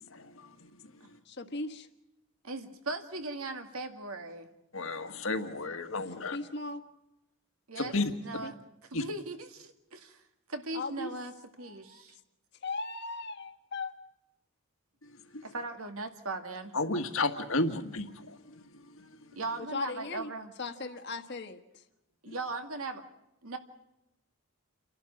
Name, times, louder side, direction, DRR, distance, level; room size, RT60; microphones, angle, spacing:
voice 1, 0.1-0.7 4.7-6.4 7.8-8.4 8.9-9.0 15.0-15.5 16.7-18.6 18.9-19.2 22.3-22.4, left 2 dB, 65° left, 1.8 m, -33 dB
voice 2, 1.2-1.9 6.2-6.8 8.4-8.5 10.7-11.1 11.6-12.0 12.6-13.9 19.6-20.3 20.6-21.8, left 3 dB, 50° left, 1.5 m, -38 dB
voice 3, 2.4-4.5 7.7-7.9 8.2-8.6 8.9-10.2 10.5-11.3 11.6-12.2 15.4-16.7 19.3-20.5 22.2-23.0 23.4-23.6, right 2 dB, 75° right, 2.1 m, -38 dB
29.5 x 11.5 x 8.6 m
head